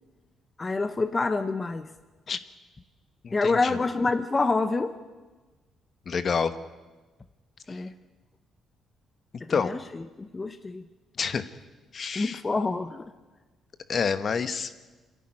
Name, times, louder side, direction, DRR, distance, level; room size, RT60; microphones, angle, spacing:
voice 1, 0.6-1.9 3.3-5.0 7.7-7.9 9.4-10.8 12.1-13.1, left 3 dB, 25° left, 10 dB, 0.9 m, -27 dB
voice 2, 6.1-6.5 9.5-9.7 11.2-11.4 11.9-12.4 13.9-14.7, left 6 dB, 50° left, 12 dB, 1.2 m, -27 dB
25.5 x 11.0 x 9.9 m, 1.3 s
cardioid pair, 90°, 0 cm